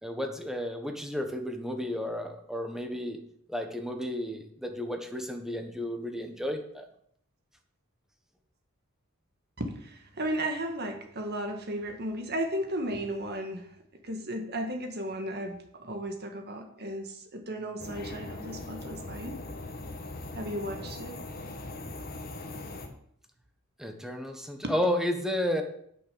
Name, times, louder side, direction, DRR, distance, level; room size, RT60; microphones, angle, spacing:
voice 1, 0.0-3.2 3.5-6.8 23.8-25.6, left 1 dB, ahead, 4 dB, 1.3 m, -32 dB
voice 2, 9.6-13.7 14.0-19.4 20.3-21.2, right 1 dB, 50° right, 4 dB, 1.7 m, -35 dB
sound 1, 17.8-22.9, left 2 dB, 45° left, 1.5 m, -40 dB
8.8 x 6.6 x 6.9 m, 0.67 s
head